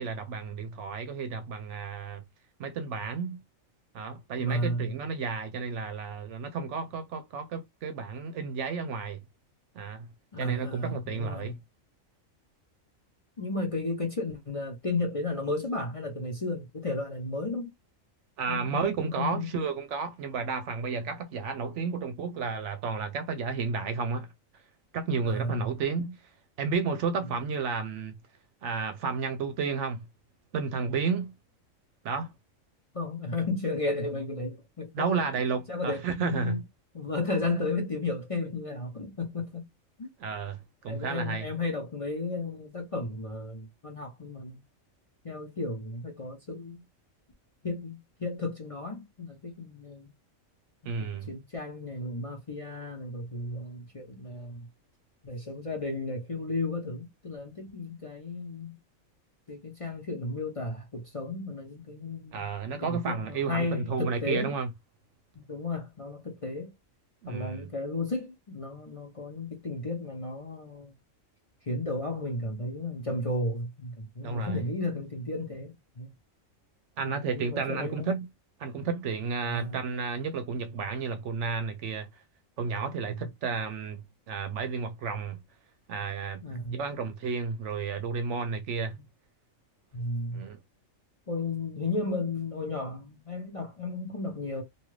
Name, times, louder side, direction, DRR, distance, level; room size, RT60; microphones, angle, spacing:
voice 1, 0.0-2.2 2.6-3.4 3.9-9.2 9.7-10.1 10.4-11.6 18.4-24.3 24.9-26.2 26.6-28.1 28.6-30.0 30.5-31.3 32.0-32.3 34.9-36.6 40.2-41.5 50.9-51.3 62.3-64.7 67.2-67.7 74.2-74.6 77.0-78.3 78.6-82.1 82.6-85.4 85.9-86.4 86.7-89.0 90.3-90.6, right 5 dB, 70° right, 0.8 m, -32 dB
voice 2, 4.4-4.9 10.3-11.5 13.4-17.7 18.5-19.7 25.2-25.7 32.9-35.2 35.7-36.6 36.9-39.7 40.0-40.1 40.9-44.6 45.2-46.8 47.6-50.1 50.8-54.7 55.2-58.8 59.5-62.5 62.8-64.6 65.3-66.7 67.3-70.9 71.7-76.1 77.0-78.2 79.5-79.8 83.0-83.3 86.4-86.8 88.9-89.0 89.9-90.4 91.3-94.6, left 2 dB, 30° left, 0.7 m, -34 dB
2.7 x 2.4 x 3.1 m
omnidirectional pair, 1.4 m